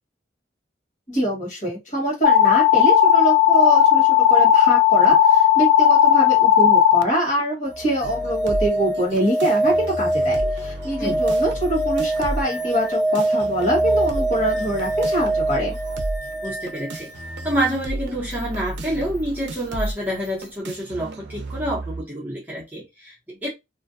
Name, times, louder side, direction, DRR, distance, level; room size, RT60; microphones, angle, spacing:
voice 1, 1.1-15.8, right 1 dB, 40° left, 1.4 m, -24 dB
sound 1, 2.2-7.0, left 9 dB, 80° left, 0.3 m, -15 dB
sound 2, 7.7-17.5 19.8-19.9, right 1 dB, 65° left, 0.8 m, -24 dB
sound 3, 8.0-22.0, right 1 dB, 75° right, 0.5 m, -33 dB
voice 2, 16.4-17.1 17.4-23.5, right 1 dB, 10° right, 0.7 m, -28 dB
2.5 x 2.1 x 2.5 m
head